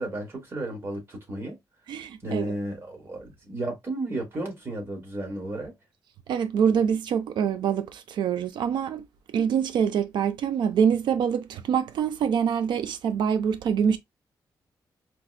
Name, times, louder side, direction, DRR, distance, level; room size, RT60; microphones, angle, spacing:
voice 1, 0.0-1.6 2.2-5.7, right 1 dB, 30° right, 1.4 m, -33 dB
voice 2, 1.9-2.6 6.3-9.1 9.3-14.0, right 7 dB, 85° right, 0.4 m, -25 dB
4.6 x 2.1 x 2.4 m
wide cardioid pair, 160°, 8 cm